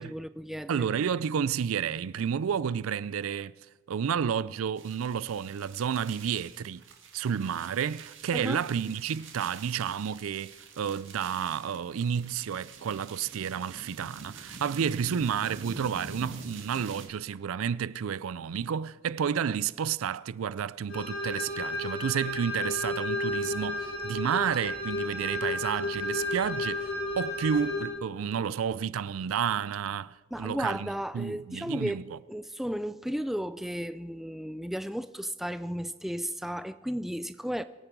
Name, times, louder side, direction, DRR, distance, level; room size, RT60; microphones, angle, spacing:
voice 1, 0.0-0.9 8.3-8.6 30.3-37.6, equal, ahead, 0.3 m, -34 dB
voice 2, 0.7-3.5 3.9-6.8 7.1-30.9 31.1-32.2, right 7 dB, 85° right, 0.4 m, -31 dB
sound 1, 4.8-17.1, right 4 dB, 65° right, 1.9 m, -46 dB
sound 2, 20.9-27.9, left 2 dB, 65° left, 4.4 m, -32 dB
24.0 x 8.9 x 4.7 m
head